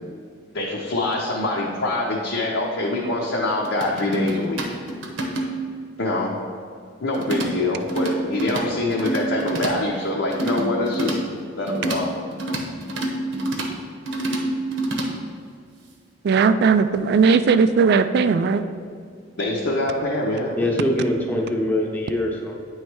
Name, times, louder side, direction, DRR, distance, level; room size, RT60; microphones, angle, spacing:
voice 1, 0.5-4.6 6.0-6.3 7.0-11.2 11.6-12.1 19.4-20.7, left 2 dB, 70° left, -4 dB, 0.8 m, -24 dB
sound 1, 3.6-5.7 7.1-7.5 7.8-8.6 8.9-9.7 10.3-11.2 11.7-12.0 12.3-13.7 14.1-15.1, right 1 dB, 75° right, 0.8 m, -27 dB
voice 2, 16.2-18.6, right 5 dB, 55° right, 11 dB, 0.3 m, -17 dB
voice 3, 20.6-22.6, left 1 dB, 10° left, -2 dB, 0.8 m, -23 dB
9.0 x 3.2 x 4.6 m, 2.3 s
head